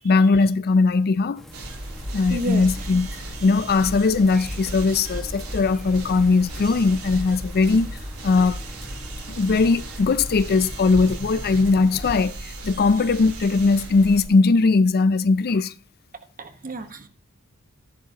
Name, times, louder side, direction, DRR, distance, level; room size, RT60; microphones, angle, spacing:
voice 1, 0.0-1.4 2.1-3.1 3.4-7.9 8.2-8.6 9.3-15.7, left 4 dB, 45° left, 0.4 m, -19 dB
sound 1, 1.3-12.1, equal, ahead, 1.6 m, -44 dB
sound 2, 1.5-14.2, right 1 dB, 70° right, 3.8 m, -35 dB
voice 2, 2.3-2.9 16.4-17.1, right 1 dB, 40° right, 1.3 m, -31 dB
13.0 x 11.0 x 2.9 m
head